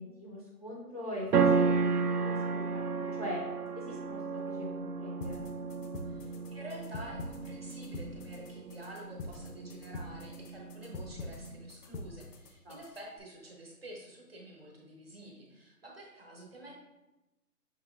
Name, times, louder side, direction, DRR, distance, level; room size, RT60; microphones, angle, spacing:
voice 1, 0.0-1.9 2.1-3.4 3.8-5.4 12.6-12.8, left 1 dB, 25° left, -5 dB, 0.6 m, -42 dB
sound 1, 1.3-11.7, right 5 dB, 75° right, 0.6 m, -33 dB
sound 2, 5.2-13.2, left 2 dB, 80° left, 0.8 m, -45 dB
voice 2, 6.0-16.8, right 1 dB, 40° right, -1 dB, 0.9 m, -49 dB
6.1 x 3.0 x 2.4 m, 1.0 s
hypercardioid pair, 170°, 48 cm